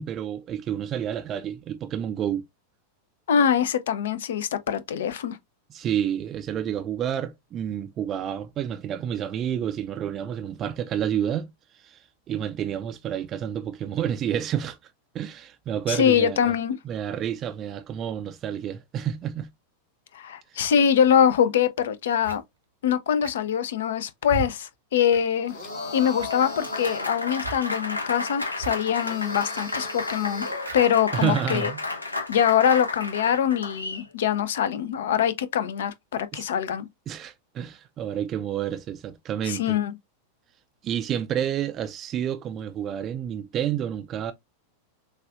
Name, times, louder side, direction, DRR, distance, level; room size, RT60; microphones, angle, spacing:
voice 1, 0.0-2.4 5.7-16.5 16.8-19.5 20.5-20.7 31.1-31.8 36.3-36.4 37.1-39.8 40.8-44.3, right 9 dB, 30° right, 0.4 m, -29 dB
voice 2, 3.3-5.4 15.9-16.8 20.1-22.4 22.8-25.5 25.9-30.5 30.7-31.7 32.3-36.9 39.4-39.9, left 8 dB, 60° left, 0.5 m, -23 dB
sound 1, 21.4-21.5 22.2-22.4 23.2-23.6 24.3-24.5 25.1-25.2 25.5-25.6 26.1-26.5 27.4-27.6 28.6-28.7 29.0-29.1 30.6-30.9, right 5 dB, 70° right, 0.8 m, -35 dB
Applause, 25.3-34.1, left 3 dB, 85° left, 0.8 m, -32 dB
sound 2, 25.5-27.2 29.0-30.7, equal, 40° left, 2.3 m, -42 dB
6.4 x 2.4 x 2.4 m
figure-of-eight pair, 90°, 0 cm